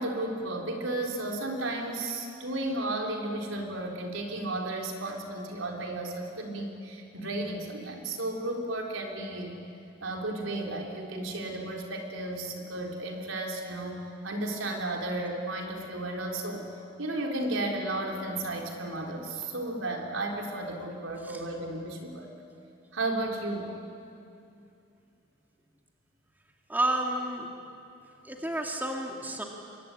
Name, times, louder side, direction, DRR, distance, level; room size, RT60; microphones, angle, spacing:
voice 1, 0.0-9.6 10.0-16.7 17.0-22.3 22.9-23.8, right 2 dB, 85° right, 1 dB, 4.0 m, -33 dB
voice 2, 26.7-27.5 28.2-29.4, right 1 dB, 10° right, 1 dB, 2.2 m, -30 dB
25.5 x 23.0 x 9.9 m, 2.6 s
head